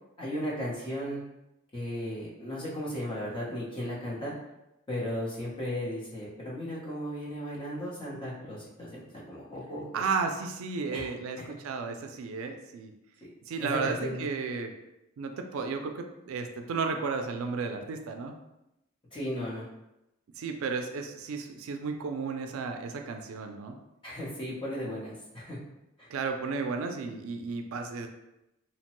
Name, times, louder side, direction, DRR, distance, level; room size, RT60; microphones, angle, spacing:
voice 1, 0.2-1.2 1.7-4.3 4.9-10.0 10.9-11.1 11.4-11.5 13.6-14.2 19.1-19.7 24.0-25.6 26.0-26.1, equal, 25° left, -6 dB, 0.8 m, -35 dB
voice 2, 9.9-12.9 13.5-14.7 15.2-18.3 20.4-23.8 26.1-28.1, right 4 dB, 80° right, 5 dB, 0.3 m, -33 dB
2.8 x 2.1 x 2.9 m, 0.90 s
head